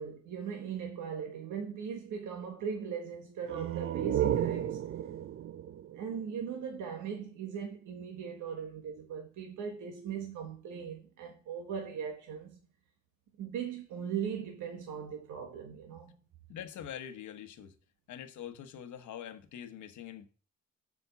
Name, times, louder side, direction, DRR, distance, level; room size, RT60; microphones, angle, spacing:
voice 1, 0.0-4.9 5.9-12.6 13.4-16.1, right 7 dB, 85° right, 1.4 m, -39 dB
sound 1, 3.4-7.0, right 11 dB, 45° right, 0.5 m, -34 dB
voice 2, 16.5-17.7 18.1-20.3, left 9 dB, 75° left, 1.2 m, -44 dB
7.1 x 5.2 x 6.7 m
cardioid pair, 125°, 29 cm